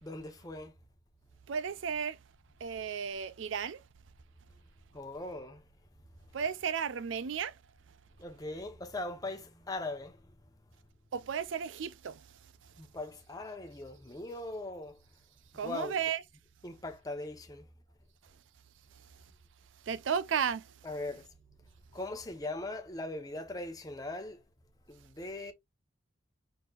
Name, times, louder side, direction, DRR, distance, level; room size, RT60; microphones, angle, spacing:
voice 1, 0.0-0.7 4.9-5.6 8.2-10.2 12.8-15.0 15.6-16.0 16.6-17.7 20.8-21.2 21.9-24.4 24.9-25.5, left 2 dB, 20° left, 0.9 m, -40 dB
voice 2, 1.5-2.2 2.6-3.8 6.3-7.6 11.1-12.2 15.5-16.2 19.8-20.7, right 7 dB, 75° right, 0.4 m, -34 dB
5.2 x 4.3 x 2.4 m
head